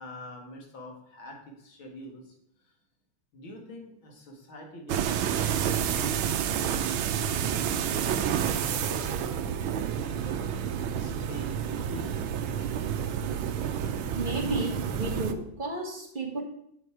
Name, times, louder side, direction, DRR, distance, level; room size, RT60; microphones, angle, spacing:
voice 1, 0.0-2.7 3.3-10.3 10.9-12.1, equal, 80° left, 1 dB, 2.6 m, -45 dB
sound 1, 4.9-15.3, right 8 dB, 85° right, 1.5 m, -29 dB
voice 2, 14.1-16.4, right 2 dB, 25° right, -1 dB, 2.0 m, -32 dB
8.1 x 7.2 x 4.7 m, 0.73 s
omnidirectional pair, 2.2 m